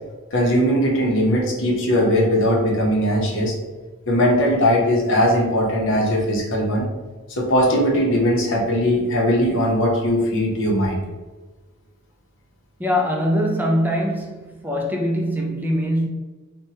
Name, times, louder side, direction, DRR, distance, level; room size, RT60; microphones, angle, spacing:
voice 1, 0.3-3.5 4.1-6.8 7.3-11.0, equal, 60° left, 0.8 m, -19 dB
voice 2, 12.8-16.1, equal, 10° right, 0.4 m, -22 dB
4.4 x 2.2 x 2.8 m
head